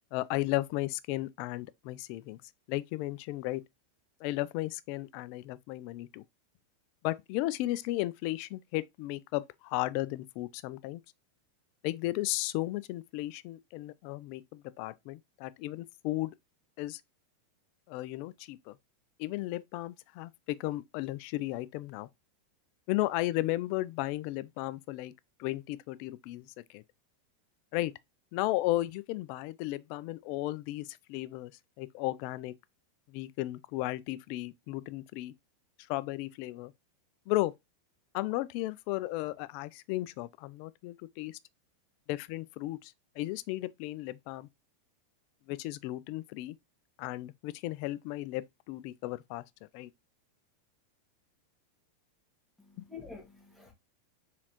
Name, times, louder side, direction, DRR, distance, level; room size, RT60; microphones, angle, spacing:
voice 1, 0.1-2.4 2.7-3.6 4.2-6.2 7.0-11.0 11.8-16.3 16.8-17.0 17.9-18.8 19.2-22.1 22.9-25.1 25.4-26.8 27.7-27.9 28.3-31.5 31.8-32.5 33.1-35.3 35.9-36.7 37.3-37.5 38.1-41.4 42.1-44.5 45.5-46.6 47.0-49.4 49.7-49.9 52.8-52.9, left 17 dB, 55° left, 0.4 m, -34 dB
voice 2, 52.6-53.7, left 5 dB, ahead, 1.9 m, -48 dB
4.1 x 3.7 x 2.9 m
hypercardioid pair, 110°, 0 cm